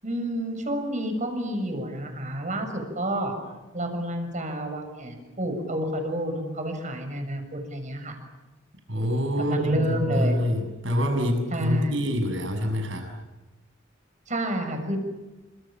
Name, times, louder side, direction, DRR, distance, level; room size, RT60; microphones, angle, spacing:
voice 1, 0.0-3.3 3.7-8.2 9.4-10.3 11.5-11.9 14.3-15.0, right 1 dB, 40° right, 6 dB, 6.8 m, -29 dB
voice 2, 8.9-13.0, equal, 75° right, 4 dB, 7.2 m, -26 dB
29.5 x 27.0 x 7.5 m, 1.1 s
head